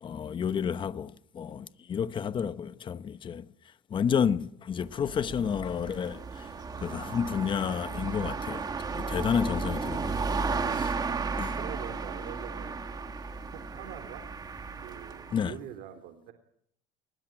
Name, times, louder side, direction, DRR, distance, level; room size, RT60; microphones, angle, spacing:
voice 1, 0.0-3.5 3.9-6.5 6.8-10.2 10.7-10.9 11.4-11.6 15.3-15.6, left 7 dB, 30° left, 1.0 m, -31 dB
sound 1, 4.8-15.5, right 4 dB, 25° right, 2.2 m, -34 dB
voice 2, 11.6-12.8 13.5-14.3 14.8-16.3, right 10 dB, 65° right, 3.2 m, -44 dB
22.0 x 20.5 x 8.9 m
cardioid pair, 135°, 16 cm